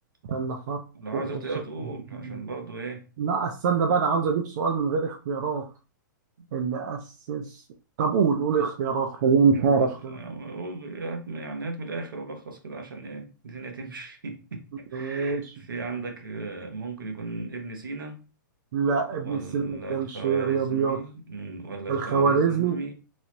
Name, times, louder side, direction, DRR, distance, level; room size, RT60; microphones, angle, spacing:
voice 1, 0.2-0.8 1.1-1.4 2.1-2.4 3.2-5.6 6.5-7.0 7.3-7.6 8.0-10.2 14.9-15.4 18.7-21.0 21.9-22.8, right 5 dB, 60° right, 0.5 m, -25 dB
voice 2, 0.9-3.1 6.4-6.6 10.0-14.6 14.9-18.2 19.1-22.9, right 3 dB, 90° right, 0.8 m, -36 dB
3.0 x 2.0 x 2.9 m
hypercardioid pair, 115°, 11 cm